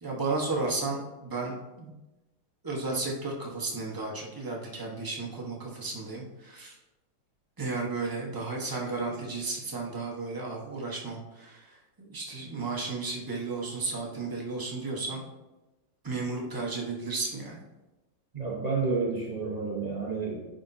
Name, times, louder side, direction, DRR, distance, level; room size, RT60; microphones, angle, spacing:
voice 1, 0.0-1.9 2.6-6.8 7.6-15.2 16.0-17.6, right 3 dB, 20° right, -2 dB, 0.5 m, -33 dB
voice 2, 18.3-20.5, right 4 dB, 80° right, -3 dB, 0.3 m, -30 dB
9.6 x 5.1 x 2.7 m, 1.1 s
omnidirectional pair, 2.3 m